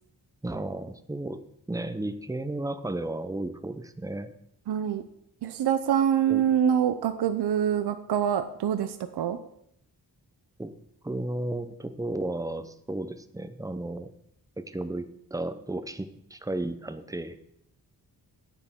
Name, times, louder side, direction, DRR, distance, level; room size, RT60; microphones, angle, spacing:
voice 1, 0.4-4.3 6.3-6.4 10.6-10.7 11.0-14.1 14.6-17.4, right 2 dB, 10° right, 10 dB, 0.6 m, -34 dB
voice 2, 4.7-5.0 5.4-9.4, right 9 dB, 85° right, 10 dB, 0.7 m, -25 dB
10.0 x 9.3 x 3.7 m, 0.72 s
wide cardioid pair, 120°, 38 cm